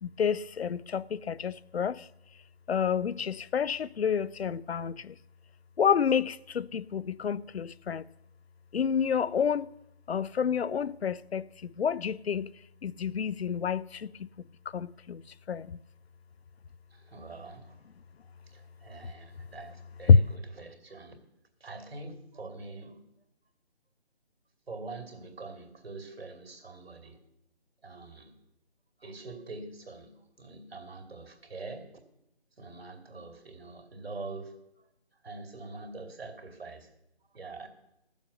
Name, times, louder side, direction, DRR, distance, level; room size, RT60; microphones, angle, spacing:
voice 1, 0.0-2.0 2.7-5.1 5.8-8.0 8.7-9.7 10.1-11.4 11.8-12.5 12.8-14.1 14.7-15.2 15.5-15.8 20.1-20.2, left 6 dB, 70° left, 0.5 m, -28 dB
voice 2, 16.9-17.8 18.5-21.2 21.6-23.1 24.7-27.2 27.8-28.3 29.0-31.9 32.6-34.6 35.2-36.9 37.3-37.7, right 3 dB, 70° right, 2.6 m, -44 dB
15.0 x 7.2 x 6.9 m
figure-of-eight pair, 165°, 32 cm